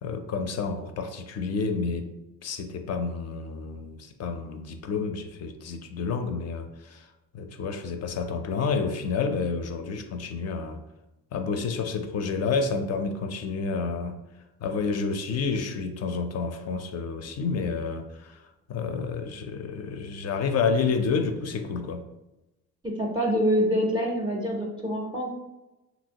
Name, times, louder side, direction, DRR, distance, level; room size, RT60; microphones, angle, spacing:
voice 1, 0.0-2.1 2.4-7.1 7.3-10.8 11.3-14.1 14.6-22.0, left 5 dB, 45° left, 7 dB, 0.5 m, -29 dB
voice 2, 22.8-25.3, equal, 15° right, 0 dB, 0.5 m, -25 dB
3.0 x 2.7 x 2.7 m, 0.98 s
cardioid pair, 90°, 35 cm